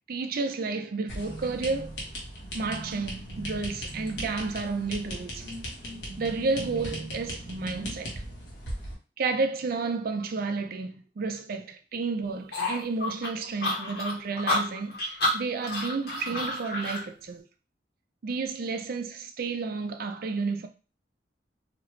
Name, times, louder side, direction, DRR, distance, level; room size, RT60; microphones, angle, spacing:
voice 1, 0.1-2.0 2.5-5.5 6.2-8.1 9.2-17.5 18.2-20.7, right 4 dB, 55° right, 0.4 m, -31 dB
sound 1, 1.1-8.9, equal, 85° left, 1.2 m, -38 dB
sound 2, 12.5-17.0, left 2 dB, 65° left, 1.2 m, -29 dB
2.9 x 2.4 x 3.1 m
head